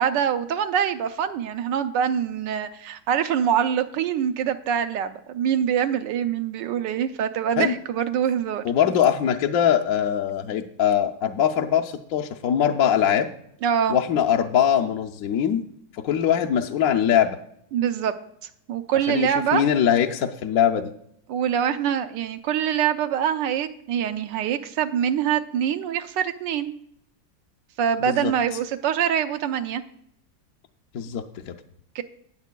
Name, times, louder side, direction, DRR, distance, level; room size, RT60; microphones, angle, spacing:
voice 1, 0.0-8.6 13.6-14.0 17.7-18.1 18.7-19.6 21.3-26.7 27.8-29.8 31.9-32.0, right 9 dB, 80° right, 9 dB, 1.3 m, -24 dB
voice 2, 8.6-13.3 13.9-15.6 15.9-17.4 19.1-20.9 28.1-28.3 30.9-31.5, left 9 dB, 65° left, 2 dB, 0.9 m, -22 dB
18.5 x 7.3 x 2.2 m, 0.70 s
omnidirectional pair, 2.0 m